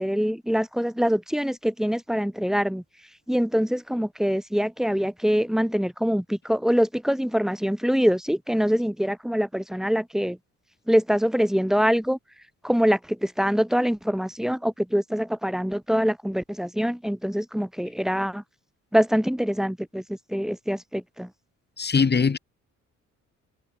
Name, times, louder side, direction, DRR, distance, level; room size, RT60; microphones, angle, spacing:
voice 1, 0.0-2.8 3.3-10.4 10.9-12.2 12.6-18.4 18.9-21.3, equal, ahead, 2.4 m, -24 dB
voice 2, 21.8-22.4, left 5 dB, 35° left, 3.3 m, -21 dB
cardioid pair, 90°, 30 cm